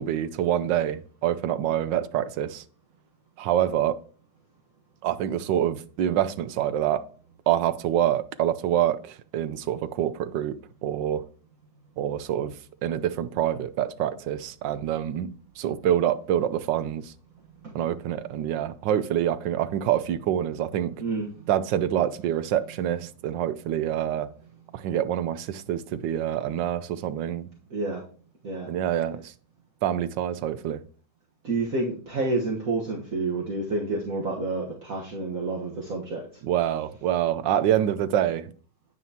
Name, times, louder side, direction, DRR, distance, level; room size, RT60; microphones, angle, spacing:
voice 1, 0.0-2.6 3.4-4.0 5.0-7.0 7.5-11.2 12.0-12.6 12.8-15.3 15.6-17.1 17.7-20.9 21.5-24.3 24.7-27.5 28.7-29.3 29.8-30.8 36.4-38.5, right 11 dB, 80° right, 1.3 m, -26 dB
voice 2, 27.7-28.0 28.4-28.7 31.4-36.3, right 3 dB, 50° right, 1.7 m, -29 dB
9.4 x 9.1 x 2.9 m
omnidirectional pair, 2.0 m